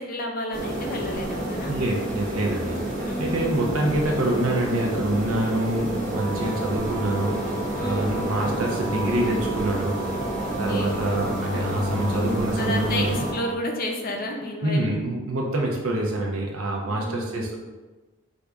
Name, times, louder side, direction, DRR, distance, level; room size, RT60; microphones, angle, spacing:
voice 1, 0.0-1.7 3.0-3.6 7.8-8.2 10.4-11.0 12.6-15.0 16.9-17.3, left 1 dB, 40° left, 2 dB, 0.5 m, -31 dB
sound 1, 0.5-13.3, right 1 dB, 35° right, 0.8 m, -30 dB
voice 2, 1.7-7.4 7.8-9.9 10.6-13.2 14.6-17.6, right 1 dB, 75° right, 0 dB, 0.8 m, -26 dB
sound 2, 6.1-13.5, equal, 10° right, 0.5 m, -33 dB
4.7 x 2.7 x 3.5 m, 1.2 s
head